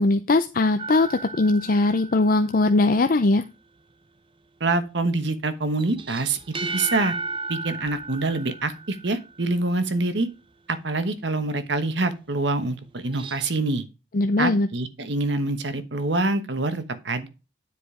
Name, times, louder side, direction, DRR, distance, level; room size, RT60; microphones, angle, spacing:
voice 1, 0.0-3.4 14.1-14.7, left 2 dB, 50° left, 0.5 m, -20 dB
sound 1, 0.8-2.8 5.8-9.4 13.0-13.5, right 3 dB, 30° right, 0.7 m, -35 dB
voice 2, 4.6-6.4 6.7-7.2 7.5-10.3 10.7-13.8 14.4-17.3, right 2 dB, 70° right, 1.1 m, -25 dB
9.9 x 5.0 x 4.9 m
head